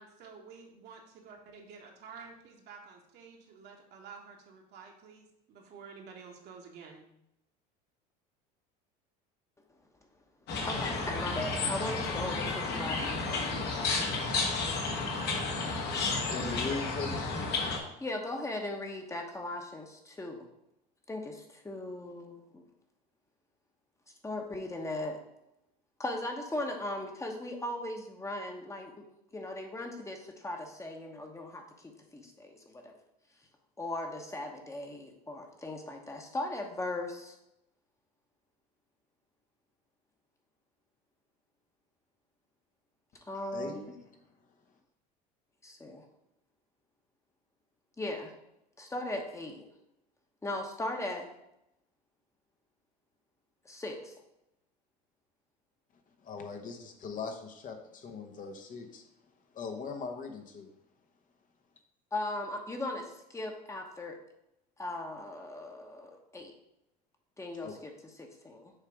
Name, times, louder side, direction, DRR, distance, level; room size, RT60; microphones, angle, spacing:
voice 1, 0.0-7.1, right 5 dB, 55° right, 1 dB, 1.5 m, -50 dB
sound 1, 10.5-17.8, left 3 dB, 55° left, 1.5 m, -32 dB
voice 2, 10.6-13.6 16.8-16.9 18.0-20.5 21.1-22.6 24.2-25.2 26.0-29.0 29.3-32.9 33.8-37.3 43.3-43.9 45.6-46.0 48.0-48.3 48.8-49.7 50.4-51.3 53.6-54.1 62.1-64.2 64.8-66.5 67.4-67.9 68.2-68.7, left 1 dB, 15° left, 3 dB, 1.1 m, -38 dB
voice 3, 16.2-17.6 43.5-43.8 56.2-59.0 59.5-60.7 67.6-67.7, left 4 dB, 40° left, 4 dB, 1.0 m, -39 dB
6.6 x 3.3 x 4.8 m, 0.83 s
supercardioid pair, 95°, 20 cm